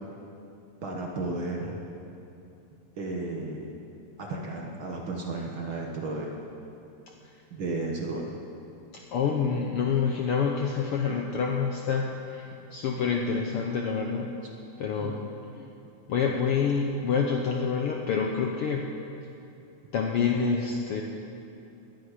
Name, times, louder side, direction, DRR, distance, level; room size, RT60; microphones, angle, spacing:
voice 1, 0.8-1.8 2.9-3.7 4.2-6.3 7.5-8.3 15.0-15.2, right 2 dB, 55° right, 0 dB, 1.7 m, -33 dB
voice 2, 8.9-12.1 12.3-12.4 12.7-14.3 14.8-15.3 15.6-15.7 16.1-18.9 19.9-21.0, left 6 dB, 70° left, 1 dB, 1.4 m, -27 dB
11.5 x 9.9 x 9.9 m, 2.8 s
omnidirectional pair, 3.4 m